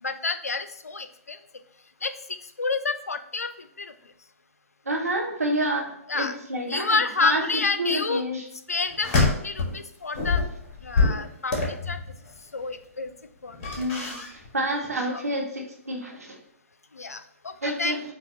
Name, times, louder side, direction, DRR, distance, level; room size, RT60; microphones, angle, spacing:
voice 1, 0.0-1.4 2.0-3.9 6.1-6.3 6.7-8.2 8.7-10.4 10.8-11.6 11.9-12.0 12.5-13.1 13.4-13.9 15.1-15.2 16.9-18.0, left 4 dB, 80° left, 10 dB, 0.4 m, -29 dB
voice 2, 4.9-5.9 6.1-7.4 7.8-8.4 13.8-14.2 14.5-16.4 17.6-18.0, right 1 dB, 80° right, -1 dB, 1.0 m, -28 dB
sound 1, 8.9-9.8 10.1-12.3 13.5-14.5 14.7-14.9, left 3 dB, 35° left, 1.2 m, -25 dB
5.4 x 2.3 x 2.9 m, 0.71 s
figure-of-eight pair, 120°, 8 cm